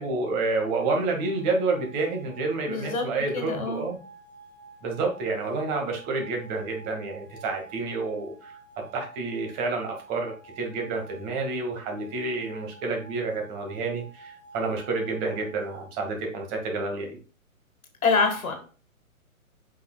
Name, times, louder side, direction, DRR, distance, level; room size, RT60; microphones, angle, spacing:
voice 1, 0.0-4.0 4.8-8.6 8.9-17.1, right 3 dB, 30° right, 2 dB, 2.0 m, -29 dB
sound 1, 0.7-15.9, right 4 dB, 80° right, 3.2 m, -50 dB
voice 2, 2.7-3.0 3.3-3.8 18.0-18.5, left 4 dB, 75° left, 5 dB, 1.8 m, -25 dB
7.8 x 5.4 x 2.3 m, 0.38 s
hypercardioid pair, 135°, 43 cm